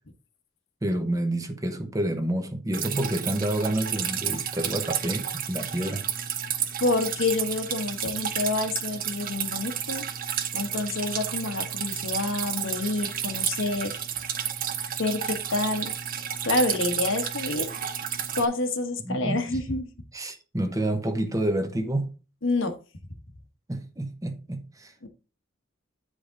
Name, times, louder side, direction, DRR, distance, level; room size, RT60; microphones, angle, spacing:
voice 1, 0.8-6.0 19.0-19.6 20.1-22.1 23.7-24.9, right 1 dB, 15° right, 0.9 m, -29 dB
Drip, 2.7-18.4, right 8 dB, 45° right, 0.8 m, -31 dB
voice 2, 6.8-10.0 10.5-14.0 15.0-15.9 16.4-17.7 18.4-19.9 22.4-22.7 25.0-25.1, left 2 dB, 70° left, 1.2 m, -28 dB
8.8 x 5.0 x 3.8 m
head